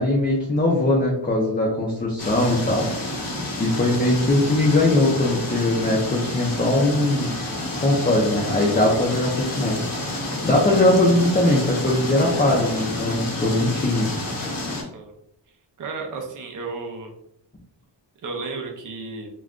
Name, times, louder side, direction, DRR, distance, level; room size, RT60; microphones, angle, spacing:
voice 1, 0.0-2.9 3.1-3.3 3.6-7.3 7.8-14.5, left 1 dB, 20° left, -3 dB, 0.5 m, -21 dB
sound 1, 2.2-14.8, left 1 dB, 50° left, 0.8 m, -29 dB
voice 2, 14.8-15.1 15.8-17.1 18.2-19.3, right 3 dB, 45° right, 2 dB, 0.5 m, -33 dB
2.5 x 2.2 x 3.5 m, 0.77 s
wide cardioid pair, 115°, 44 cm